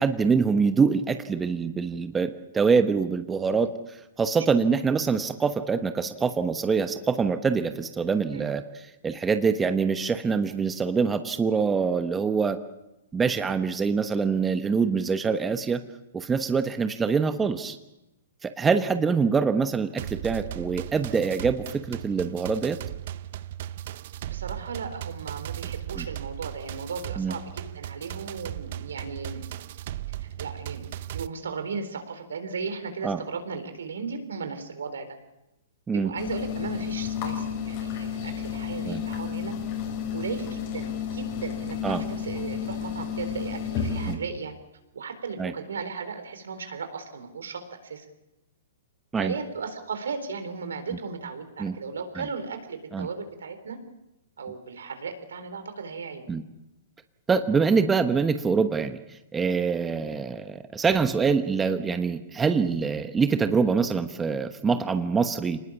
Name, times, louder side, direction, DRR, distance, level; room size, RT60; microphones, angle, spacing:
voice 1, 0.0-12.6 13.1-15.8 16.1-17.8 18.4-22.8 26.0-26.1 27.2-27.4 33.0-33.2 35.9-36.1 38.8-39.0 41.8-42.0 44.1-44.2 45.4-45.5 49.1-49.3 51.6-51.8 52.2-52.3 52.9-53.1 56.3-56.4 57.3-65.6, right 5 dB, 15° right, 9 dB, 1.1 m, -25 dB
sound 1, 20.0-31.3, right 12 dB, 55° right, 0.7 m, -37 dB
voice 2, 24.2-29.5 30.2-35.1 35.9-39.5 40.1-44.5 44.9-48.1 49.2-53.8 54.4-56.3, right 5 dB, 75° right, 8 dB, 3.9 m, -36 dB
sound 2, 36.2-44.1, left 7 dB, 45° left, 7.2 m, -31 dB
25.5 x 20.0 x 7.3 m, 0.92 s
hypercardioid pair, 125°, 0 cm